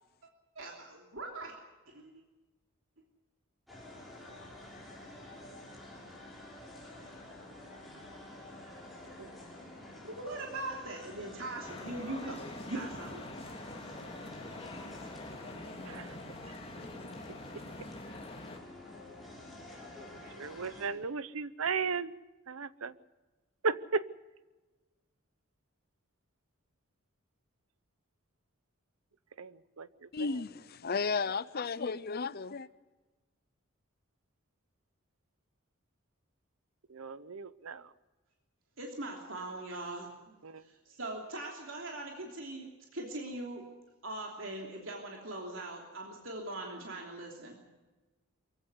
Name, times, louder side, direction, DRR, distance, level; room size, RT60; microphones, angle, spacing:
voice 1, 0.5-1.5 1.9-2.2 10.0-13.2 38.8-40.3 40.6-43.7 44.0-47.6, right 2 dB, 65° right, 3.2 m, -41 dB
sound 1, 3.7-20.9, left 1 dB, ahead, 5.9 m, -49 dB
sound 2, 11.6-18.6, left 2 dB, 25° left, 2.3 m, -45 dB
voice 2, 20.4-22.1 22.5-22.9 23.6-24.1 29.4-30.1 36.9-37.9 40.4-40.6, right 5 dB, 85° right, 0.8 m, -35 dB
voice 3, 30.1-32.7, left 4 dB, 45° left, 0.6 m, -34 dB
24.0 x 16.0 x 8.1 m
head